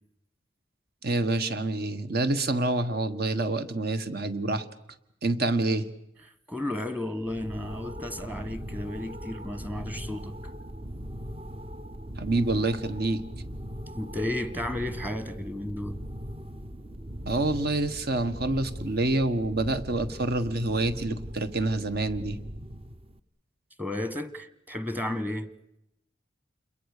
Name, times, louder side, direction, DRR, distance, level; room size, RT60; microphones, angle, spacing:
voice 1, 1.0-4.6 5.2-5.9 12.2-13.2 17.3-22.4, right 2 dB, 55° right, 1.6 m, -27 dB
voice 2, 6.5-10.4 13.9-16.0 23.8-25.5, left 1 dB, 10° right, 1.4 m, -33 dB
sound 1, 7.2-23.2, equal, 30° right, 0.9 m, -40 dB
28.5 x 22.0 x 6.8 m
head